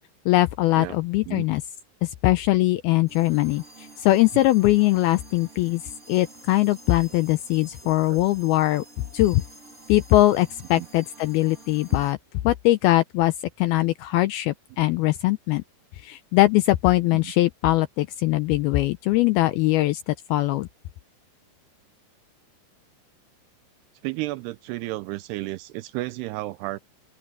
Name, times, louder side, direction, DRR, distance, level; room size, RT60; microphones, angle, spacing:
voice 1, 0.3-1.6 2.0-5.8 6.1-8.8 9.1-9.4 9.9-12.2 12.4-15.6 16.0-20.7, left 17 dB, 85° left, 2.2 m, -21 dB
sound 1, 3.1-12.1, right 2 dB, 15° right, 3.6 m, -48 dB
voice 2, 7.8-8.2 10.7-10.9 11.9-12.0 17.2-17.3 24.0-26.8, right 19 dB, 85° right, 2.4 m, -32 dB
open air
omnidirectional pair, 5.0 m